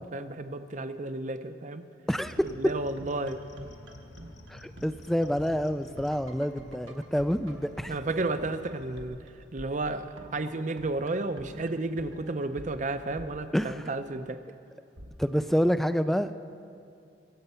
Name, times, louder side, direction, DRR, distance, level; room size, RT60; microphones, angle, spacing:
voice 1, 0.1-1.8 2.4-3.4 7.9-9.2 9.5-14.4, right 2 dB, 40° right, 10 dB, 0.6 m, -32 dB
sound 1, 2.1-9.0, left 1 dB, 70° left, 0.9 m, -51 dB
voice 2, 2.1-2.4 4.5-7.9 13.5-13.8 15.2-16.3, equal, ahead, 12 dB, 0.3 m, -27 dB
sound 2, 2.2-14.1 15.0-15.6, right 1 dB, 75° right, 1.3 m, -48 dB
24.0 x 7.9 x 5.6 m, 2.5 s
head